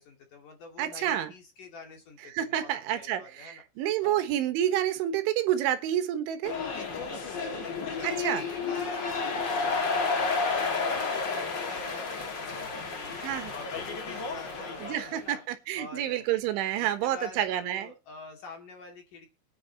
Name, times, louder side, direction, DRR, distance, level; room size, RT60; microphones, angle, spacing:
voice 1, 0.0-3.6 4.0-4.2 6.7-15.4 15.8-16.3 16.8-19.3, left 4 dB, 50° left, 4 dB, 3.2 m, -46 dB
voice 2, 0.8-1.3 2.3-6.5 8.0-8.4 13.2-13.5 14.8-17.9, right 11 dB, 75° right, 10 dB, 3.5 m, -29 dB
sound 1, 6.4-15.2, left 4 dB, 90° left, 0.9 m, -31 dB
22.5 x 9.9 x 2.9 m, 0.29 s
omnidirectional pair, 5.8 m